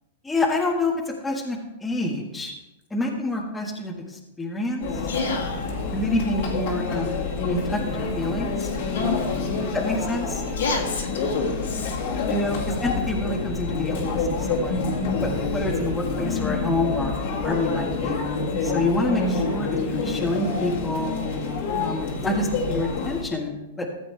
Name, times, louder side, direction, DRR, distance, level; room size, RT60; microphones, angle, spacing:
voice 1, 0.2-0.9 1.2-2.5 2.9-4.9 5.9-8.7 9.7-10.4 12.3-14.8 15.2-18.2 18.6-21.2 21.8-23.9, left 2 dB, 10° left, -1 dB, 1.7 m, -27 dB
Conversation / Chatter / Crowd, 4.8-23.2, left 4 dB, 60° left, 2.2 m, -27 dB
voice 2, 5.1-5.7 8.9-9.7 10.5-11.9, left 3 dB, 80° left, -2 dB, 2.8 m, -30 dB
14.5 x 7.6 x 3.4 m, 0.97 s
hypercardioid pair, 120°, 0 cm